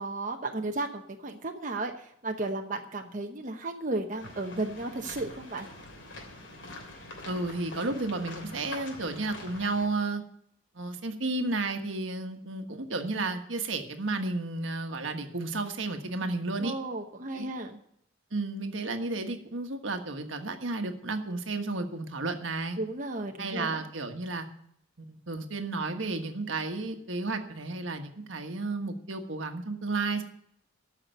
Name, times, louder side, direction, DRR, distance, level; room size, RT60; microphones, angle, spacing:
voice 1, 0.0-5.7 16.6-17.8 22.8-23.8, right 2 dB, 40° right, 3 dB, 1.0 m, -34 dB
sound 1, 4.2-9.9, left 2 dB, 65° left, 3.1 m, -45 dB
voice 2, 7.3-10.2 10.7-16.7 17.3-17.5 18.3-22.8 23.4-24.5 25.0-30.2, right 3 dB, 80° right, 6 dB, 1.4 m, -32 dB
13.5 x 5.8 x 8.9 m, 0.71 s
head